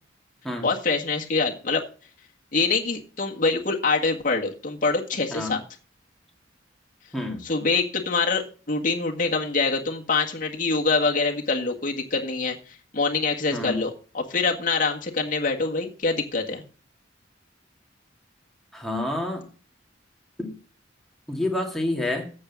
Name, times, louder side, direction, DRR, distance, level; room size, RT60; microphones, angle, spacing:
voice 1, 0.6-1.8 2.5-5.6 7.4-16.6, left 4 dB, 45° left, 1 dB, 1.7 m, -25 dB
voice 2, 18.7-19.4 20.4-20.6 21.3-22.3, left 1 dB, ahead, 0 dB, 2.4 m, -28 dB
8.7 x 7.7 x 7.0 m, 0.39 s
head